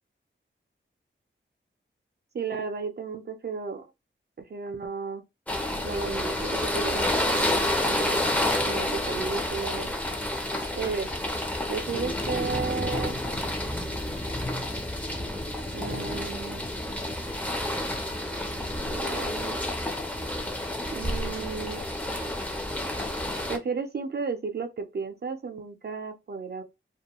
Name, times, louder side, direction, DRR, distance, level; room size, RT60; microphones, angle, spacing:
voice 1, 2.3-3.9 4.4-5.2 5.8-8.2 8.7-9.9 10.8-11.1 11.7-13.2 13.8-14.2 15.7-16.6 18.9-19.6 20.9-21.9 22.2-22.3 23.5-26.6, right 5 dB, 50° right, 0.5 m, -34 dB
sound 1, 5.5-23.6, left 1 dB, 5° left, 0.5 m, -29 dB
2.3 x 2.2 x 2.9 m
wide cardioid pair, 120°, 21 cm